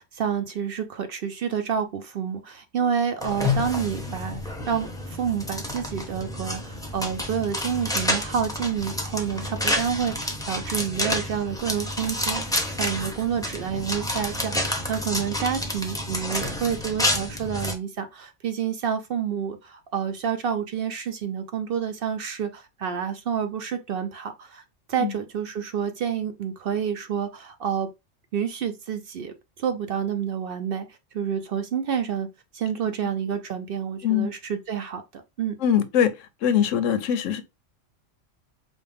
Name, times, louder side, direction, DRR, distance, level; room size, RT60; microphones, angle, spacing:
voice 1, 0.0-24.6 24.9-27.9 28.3-32.3 32.5-35.6, right 7 dB, 60° right, 0.6 m, -29 dB
sound 1, 3.2-17.7, left 1 dB, 5° left, 0.7 m, -29 dB
voice 2, 35.6-36.1 36.4-37.4, left 9 dB, 90° left, 1.0 m, -22 dB
5.1 x 2.3 x 3.4 m
omnidirectional pair, 1.3 m